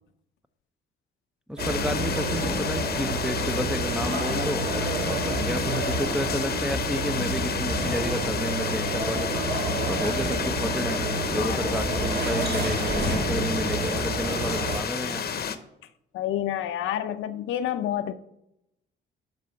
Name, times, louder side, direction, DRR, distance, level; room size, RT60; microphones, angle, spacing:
voice 1, 1.5-11.0 11.3-15.3, equal, 5° right, 0.6 m, -31 dB
sound 1, 1.6-15.6, left 7 dB, 50° left, 0.9 m, -31 dB
sound 2, 1.6-14.8, right 2 dB, 55° right, 1.7 m, -29 dB
sound 3, 1.8-14.6, right 4 dB, 80° right, 3.3 m, -43 dB
voice 2, 11.4-11.7 16.1-18.1, left 11 dB, 85° left, 0.7 m, -29 dB
11.5 x 4.1 x 6.9 m
cardioid pair, 90°, 20 cm